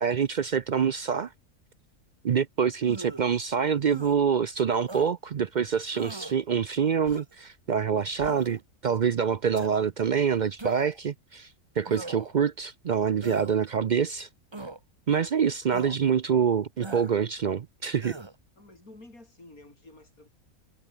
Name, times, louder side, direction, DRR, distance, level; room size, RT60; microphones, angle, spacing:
voice 1, 0.0-1.3 2.2-11.5 11.8-14.3 15.1-18.2, right 7 dB, 60° right, 0.5 m, -26 dB
sound 1, 2.8-3.3 3.9-4.2 4.9-5.1 5.9-6.4 7.0-7.4 8.2-8.6 9.5-9.7 10.6-11.0 11.9-12.4 13.2-13.6 14.5-14.8 15.7-16.0 16.8-17.1 18.0-18.3, right 2 dB, 20° right, 1.5 m, -40 dB
voice 2, 18.6-20.3, left 2 dB, 85° left, 7.5 m, -50 dB
omnidirectional pair, 1.5 m